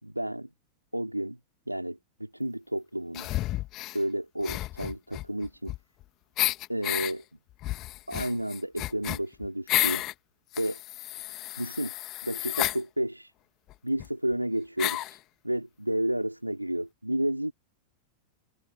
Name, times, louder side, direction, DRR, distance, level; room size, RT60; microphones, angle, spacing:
voice 1, 0.0-0.5 0.9-1.4 1.7-3.3 3.9-5.7 6.7-7.2 8.1-10.0 10.5-10.8 11.6-11.9 12.2-13.3 13.8-15.2 15.4-17.5, right 1 dB, 90° right, 3.5 m, -31 dB
sound 1, 3.1-4.0 4.4-6.0 6.4-7.1 7.6-10.1 10.5-12.8 13.7-13.8 14.0-14.1 14.8-15.2, left 16 dB, 35° left, 1.6 m, -31 dB
figure-of-eight pair, 90°, 0 cm